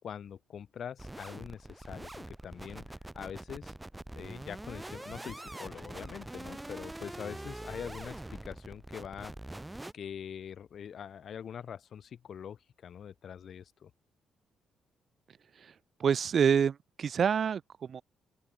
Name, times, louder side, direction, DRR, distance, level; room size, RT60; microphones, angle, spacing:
voice 1, 0.0-3.7 4.1-9.3 9.9-13.9, left 8 dB, 55° left, 4.3 m, -44 dB
sound 1, 1.0-9.9, right 1 dB, 10° right, 7.2 m, -44 dB
voice 2, 16.0-18.0, right 7 dB, 50° right, 8.0 m, -27 dB
open air
cardioid pair, 90°, 0 cm